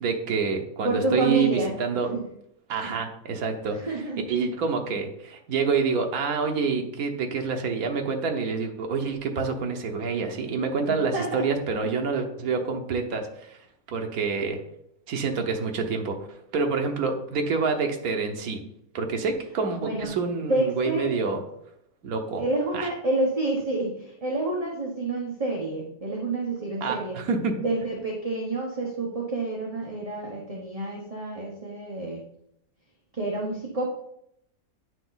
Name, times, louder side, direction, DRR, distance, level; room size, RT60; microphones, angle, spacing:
voice 1, 0.0-2.1 2.7-3.8 4.3-13.6 13.9-14.6 15.1-16.2 16.5-18.6 18.9-21.4 22.0-22.4 22.7-22.9 26.8-27.6, right 5 dB, 80° right, 4 dB, 1.4 m, -27 dB
voice 2, 0.8-1.7 2.1-2.2 2.8-2.9 3.7-4.3 10.9-11.9 19.8-20.1 20.5-21.1 22.4-27.2 27.5-32.2 33.2-33.9, right 2 dB, 30° right, -1 dB, 1.0 m, -29 dB
9.1 x 5.0 x 4.0 m, 0.75 s
omnidirectional pair, 1.5 m